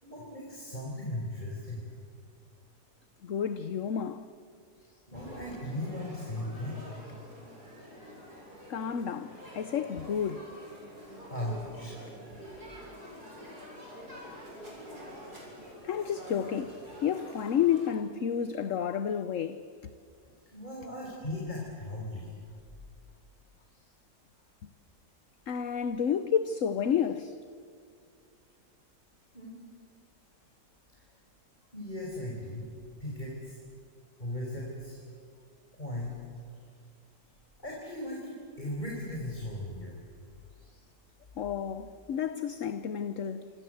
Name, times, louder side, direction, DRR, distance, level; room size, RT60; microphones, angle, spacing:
voice 1, 0.0-1.9 5.1-6.8 11.3-11.9 15.2-15.4 15.8-16.0 20.4-22.4 29.3-29.6 30.9-31.0 31.7-32.7 33.0-33.6 34.2-35.0 35.7-36.1 37.6-40.0, left 1 dB, 25° left, 5.2 m, -37 dB
voice 2, 3.2-4.2 8.7-10.5 15.8-19.9 25.5-27.4 41.4-43.5, left 8 dB, 55° left, 1.2 m, -31 dB
sound 1, 5.1-17.9, equal, 75° right, 7.7 m, -47 dB
27.5 x 26.5 x 8.0 m
omnidirectional pair, 1.7 m